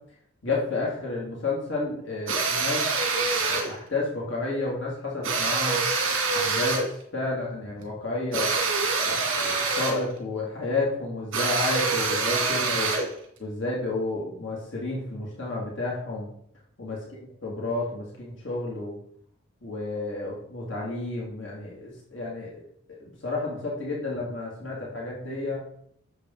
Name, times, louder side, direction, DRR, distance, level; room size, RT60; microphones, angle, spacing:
voice 1, 0.4-2.9 3.4-5.8 6.3-6.8 7.1-8.5 9.1-12.9 13.4-16.3 16.8-17.0 17.4-18.9 19.6-22.6 22.9-25.6, left 2 dB, 65° left, -4 dB, 2.5 m, -31 dB
sound 1, 2.3-3.7 5.2-6.9 8.3-10.1 11.3-13.1, right 4 dB, 75° right, 2.4 m, -25 dB
10.0 x 7.3 x 3.9 m, 0.68 s
head